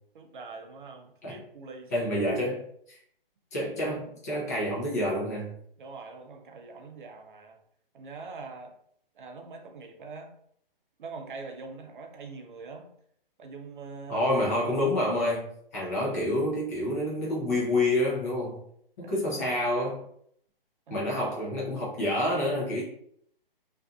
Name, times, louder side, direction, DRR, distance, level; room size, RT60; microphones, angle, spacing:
voice 1, 0.1-1.9 2.2-2.6 5.8-7.6 7.9-8.7 9.1-10.3 11.0-12.9 13.4-14.3 15.9-16.2 19.0-19.9 20.9-21.1, right 4 dB, 60° right, 3 dB, 0.6 m, -44 dB
voice 2, 1.9-3.0 3.5-5.5 14.1-18.6 19.0-20.0 20.9-22.8, left 1 dB, 20° left, -5 dB, 0.4 m, -28 dB
2.5 x 2.4 x 2.3 m, 0.67 s
hypercardioid pair, 145°, 29 cm